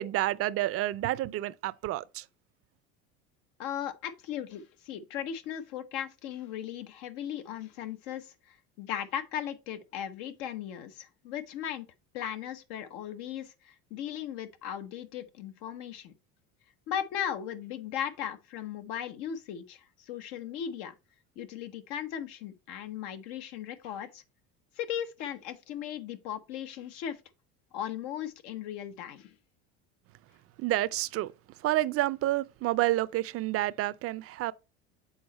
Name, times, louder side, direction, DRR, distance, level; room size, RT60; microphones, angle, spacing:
voice 1, 0.0-2.2 30.6-31.3 31.6-34.5, right 15 dB, 45° right, 0.5 m, -29 dB
voice 2, 3.6-11.9 12.1-16.1 16.9-20.9 21.4-24.2 24.7-27.2 27.7-29.3, left 10 dB, 75° left, 1.0 m, -37 dB
7.2 x 4.3 x 4.1 m
supercardioid pair, 95°, 33 cm